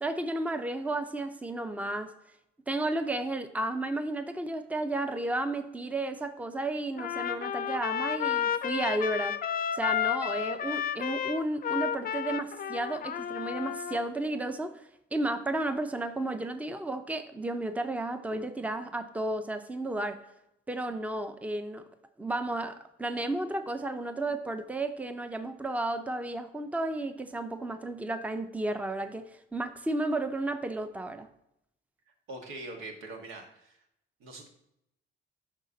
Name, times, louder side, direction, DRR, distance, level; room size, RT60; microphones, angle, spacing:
voice 1, 0.0-2.1 2.7-9.4 9.7-20.2 20.7-21.8 22.2-31.3, right 2 dB, 5° right, 9 dB, 0.6 m, -33 dB
Trumpet, 7.0-14.1, left 9 dB, 45° left, 0.5 m, -32 dB
voice 2, 32.1-33.8 34.2-34.5, right 2 dB, 85° right, 2 dB, 1.5 m, -43 dB
9.0 x 5.9 x 2.8 m, 0.79 s
cardioid pair, 90°, 20 cm